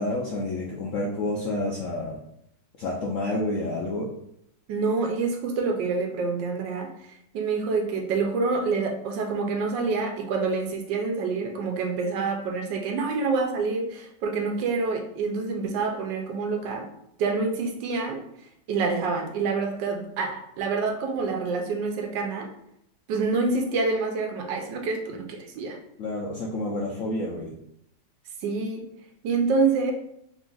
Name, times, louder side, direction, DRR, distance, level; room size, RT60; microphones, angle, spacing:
voice 1, 0.0-2.2 2.8-4.1 26.0-27.5, left 1 dB, 75° left, -2 dB, 0.7 m, -29 dB
voice 2, 4.7-6.9 7.3-16.9 17.2-18.2 18.7-22.5 23.1-25.8 28.4-28.8 29.2-29.9, right 4 dB, 80° right, 2 dB, 1.4 m, -27 dB
3.8 x 2.5 x 3.8 m, 0.75 s
omnidirectional pair, 2.0 m